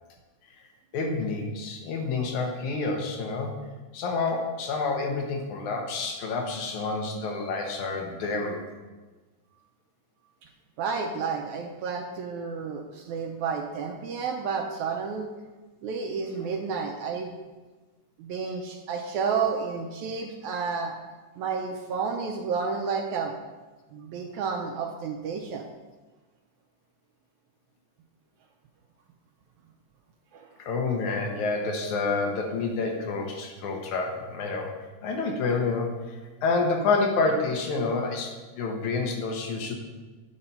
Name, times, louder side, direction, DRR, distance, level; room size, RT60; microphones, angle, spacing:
voice 1, 0.9-3.5 3.9-8.7 30.6-34.7 35.0-39.7, left 3 dB, 75° left, 2 dB, 2.3 m, -28 dB
voice 2, 10.8-15.3 15.8-17.3 18.2-21.0 21.4-23.3 23.9-25.7 30.3-30.5, right 5 dB, 80° right, 2 dB, 1.9 m, -31 dB
8.8 x 4.3 x 5.3 m, 1.3 s
omnidirectional pair, 3.6 m